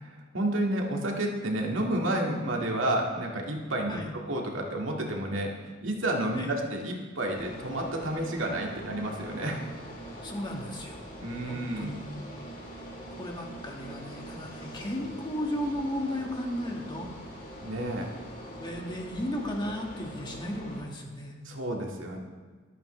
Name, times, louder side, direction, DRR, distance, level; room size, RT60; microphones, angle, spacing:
voice 1, 0.3-9.6 11.2-11.9 17.6-18.2 21.4-22.2, right 1 dB, 70° right, 0 dB, 2.1 m, -30 dB
sound 1, 7.3-20.8, right 1 dB, 45° left, 4.2 m, -43 dB
voice 2, 10.1-11.0 11.5-12.0 13.2-17.1 18.6-21.3, left 1 dB, 20° left, 0 dB, 1.8 m, -35 dB
24.5 x 8.7 x 3.3 m, 1.5 s
head